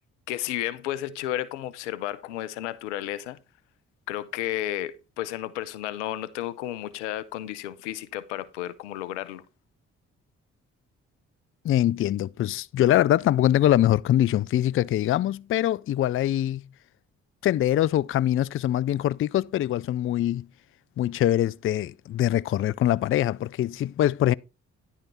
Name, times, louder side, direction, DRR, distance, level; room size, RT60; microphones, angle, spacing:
voice 1, 0.3-3.4 4.1-9.4, left 13 dB, 90° left, 0.6 m, -32 dB
voice 2, 11.6-16.6 17.4-20.5 21.0-24.3, left 12 dB, 40° left, 0.4 m, -23 dB
10.5 x 5.8 x 4.1 m
hypercardioid pair, 40°, 34 cm